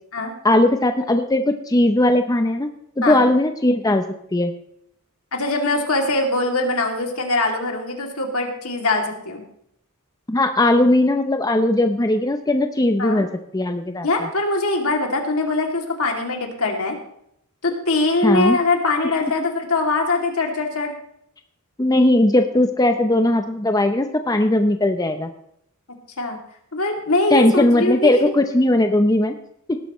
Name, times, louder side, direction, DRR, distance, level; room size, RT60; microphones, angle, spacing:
voice 1, 0.4-2.7 3.0-4.0 4.3-4.5 10.3-13.3 13.5-14.3 18.2-18.6 19.2-19.3 21.8-25.3 27.3-29.3, left 1 dB, 15° left, 6 dB, 0.7 m, -18 dB
voice 2, 5.3-9.4 13.0-13.2 14.0-17.0 17.6-20.9 26.2-26.4 26.7-28.4, left 2 dB, 70° left, 2 dB, 2.7 m, -22 dB
18.5 x 12.0 x 3.1 m, 0.72 s
head